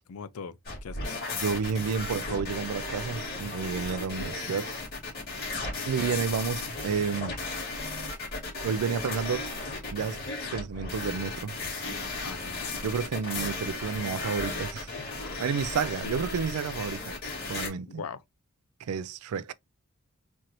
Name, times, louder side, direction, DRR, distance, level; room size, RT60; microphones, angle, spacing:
voice 1, 0.0-1.2 6.1-6.3 12.2-12.7 16.0-16.1 17.9-18.2, left 5 dB, 80° left, 0.5 m, -41 dB
sound 1, 0.7-17.7, left 3 dB, 45° left, 2.4 m, -35 dB
voice 2, 1.3-4.8 5.9-7.4 8.6-9.5 9.9-10.2 10.5-11.6 12.8-14.9 15.4-17.1 17.5-18.0 18.8-19.5, right 6 dB, 90° right, 0.4 m, -31 dB
4.4 x 2.6 x 3.0 m
head